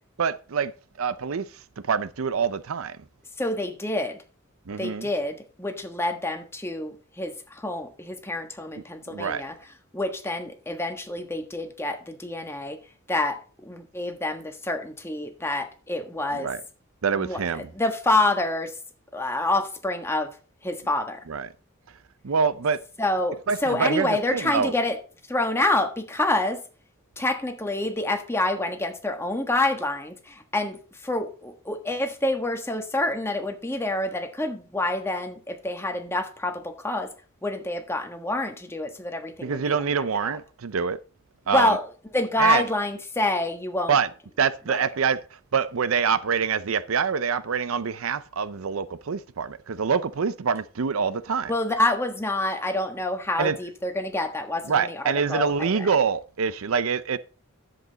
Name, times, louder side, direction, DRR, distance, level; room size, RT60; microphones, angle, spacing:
voice 1, 0.2-0.7 1.0-1.5 1.9-3.0 4.7-5.1 8.8-8.9 9.1-9.5 16.3-16.6 17.0-17.7 21.3-21.5 22.2-22.8 23.5-24.7 39.4-41.0 41.5-41.8 42.4-42.6 43.9-44.1 44.4-45.2 45.5-51.5 53.4-53.6 54.7-57.2, right 6 dB, 80° right, 0.6 m, -25 dB
voice 2, 3.4-4.2 4.8-9.5 9.9-12.8 13.1-13.4 13.6-16.5 17.1-17.4 17.7-18.7 19.1-20.3 20.6-21.2 23.0-25.0 25.3-26.6 27.2-30.8 31.0-37.1 37.4-40.4 41.5-44.0 44.7-44.9 51.5-55.9, left 2 dB, 10° left, 1.4 m, -27 dB
11.0 x 7.8 x 4.0 m
head